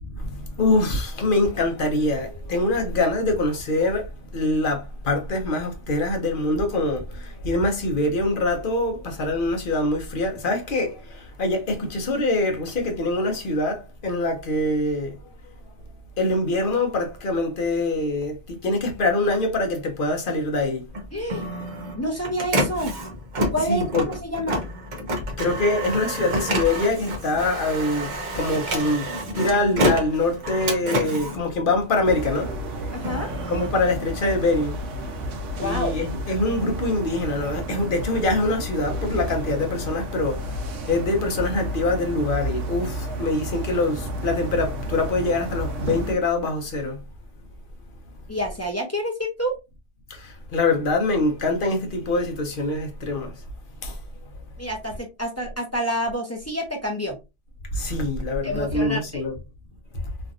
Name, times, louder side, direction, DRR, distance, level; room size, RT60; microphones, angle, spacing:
voice 1, 0.0-15.2 16.2-20.9 23.7-24.1 25.4-29.1 29.3-32.5 33.5-34.8 35.6-40.6 40.9-47.0 50.1-53.4 53.8-54.0 57.7-59.3, left 2 dB, 50° left, 0.9 m, -24 dB
Printer, 20.9-32.3 32.8-34.6, equal, 45° right, 0.7 m, -28 dB
voice 2, 21.1-21.5 21.9-22.9 23.5-24.6 32.9-33.3 35.5-35.9 48.3-49.5 54.6-57.2 58.4-59.2, equal, 20° left, 0.5 m, -28 dB
sound 1, 32.0-46.1, equal, 80° right, 1.0 m, -31 dB
3.2 x 2.5 x 2.5 m
omnidirectional pair, 1.3 m